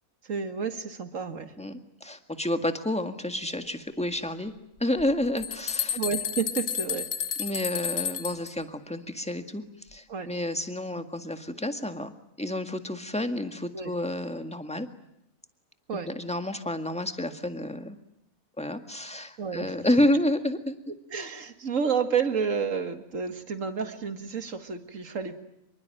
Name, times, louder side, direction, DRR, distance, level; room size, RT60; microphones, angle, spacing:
voice 1, 0.2-1.5 5.9-7.1 10.1-10.3 13.7-13.9 15.9-16.1 19.4-19.8 21.1-25.4, right 6 dB, 65° right, 8 dB, 2.3 m, -30 dB
voice 2, 1.6-4.5 4.8-6.0 7.4-9.6 9.9-12.1 12.4-14.9 16.1-18.0 18.6-20.8, left 1 dB, 5° left, 8 dB, 1.8 m, -29 dB
sound 1, 5.0-5.1 5.4-8.5, left 8 dB, 85° left, 1.9 m, -31 dB
26.0 x 23.5 x 9.1 m, 0.78 s
omnidirectional pair, 1.4 m